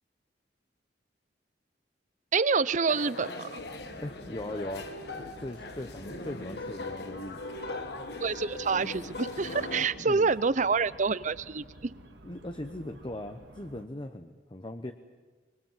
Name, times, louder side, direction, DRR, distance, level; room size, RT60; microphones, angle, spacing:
voice 1, 2.3-3.6 8.2-11.9, right 4 dB, 45° right, 17 dB, 0.6 m, -27 dB
sound 1, 2.9-9.9, left 2 dB, 65° left, 1.6 m, -40 dB
sound 2, 3.6-13.9, right 1 dB, 85° right, 2.1 m, -52 dB
voice 2, 4.0-7.5 10.0-10.3 12.2-14.9, left 1 dB, 25° left, 7 dB, 0.9 m, -39 dB
25.0 x 23.0 x 7.5 m, 1.4 s
head